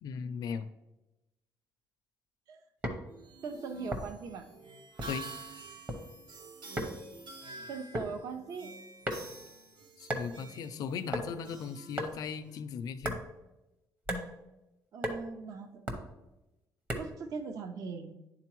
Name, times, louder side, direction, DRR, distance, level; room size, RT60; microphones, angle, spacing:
voice 1, 0.0-0.7 5.1-5.3 10.0-13.2, left 6 dB, 60° left, 11 dB, 0.4 m, -37 dB
sound 1, 2.8-3.1 3.9-4.3 5.0-5.3 5.6-6.0 6.8-7.0 8.0-8.1 9.0-9.4 10.1-10.3 11.1-11.3 12.0-12.2 13.0-13.2 14.1-14.3 15.0-15.2 15.9-16.1 16.9-17.2, right 1 dB, 25° right, 0.8 m, -35 dB
sound 2, 3.1-12.6, right 3 dB, 80° right, 1.0 m, -49 dB
voice 2, 3.4-4.5 7.7-8.7 14.9-15.7 17.0-18.2, right 5 dB, 55° right, 7 dB, 0.5 m, -40 dB
10.5 x 3.8 x 3.0 m, 0.96 s
cardioid pair, 165°, 7 cm